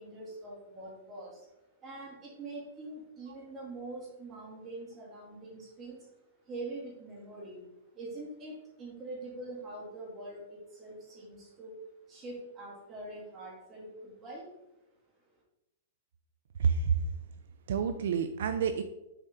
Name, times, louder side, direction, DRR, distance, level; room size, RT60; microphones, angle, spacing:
voice 1, 0.0-1.5 1.8-6.1 6.4-11.8 12.1-14.5, right 2 dB, 20° right, -4 dB, 2.3 m, -44 dB
voice 2, 16.6-17.0 17.7-18.8, right 6 dB, 70° right, 9 dB, 0.5 m, -28 dB
6.8 x 4.3 x 3.6 m, 0.90 s
supercardioid pair, 165°, 0 cm